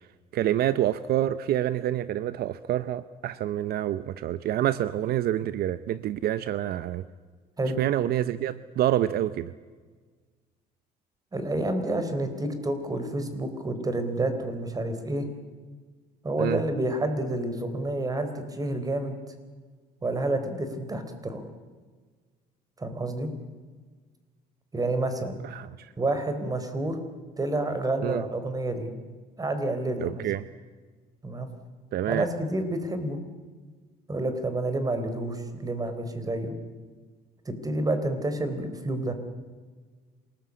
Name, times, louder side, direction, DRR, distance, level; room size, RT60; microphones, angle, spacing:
voice 1, 0.3-7.0 7.8-9.5 16.4-16.6 25.4-25.9 28.0-28.2 30.0-30.5 31.9-32.3, right 12 dB, 65° right, 15 dB, 0.8 m, -27 dB
voice 2, 11.3-15.3 16.2-19.2 20.0-21.4 22.8-23.3 24.7-25.4 26.0-27.0 27.4-28.9 29.4-30.2 31.2-31.5 32.1-33.2 34.1-36.5 37.5-39.1, right 2 dB, 20° right, 9 dB, 4.1 m, -29 dB
27.0 x 20.0 x 8.5 m, 1.5 s
cardioid pair, 110°, 17 cm